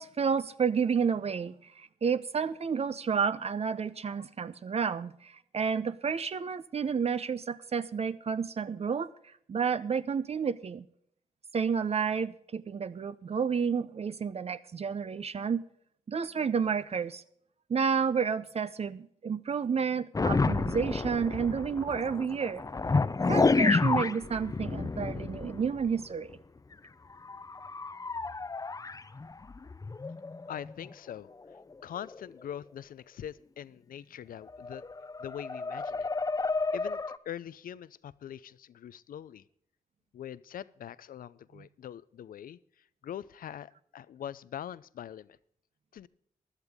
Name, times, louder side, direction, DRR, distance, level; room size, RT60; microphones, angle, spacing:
voice 1, 0.0-9.1 9.5-10.8 11.5-15.6 16.1-17.2 17.7-22.6 23.3-26.3, right 6 dB, 45° right, 14 dB, 0.6 m, -30 dB
sound 1, 20.1-26.0 26.3-26.4 26.7-26.8 27.2-30.9 31.5-31.7 32.0-32.3 34.5-37.2, left 3 dB, 25° left, 0.6 m, -30 dB
voice 2, 30.5-31.3 31.8-34.8 35.2-36.1 36.7-37.0 37.2-39.4 40.1-42.6 43.0-45.4 45.9-46.1, left 10 dB, 75° left, 19 dB, 0.5 m, -43 dB
16.5 x 11.5 x 3.6 m, 0.69 s
cardioid pair, 80°, 15 cm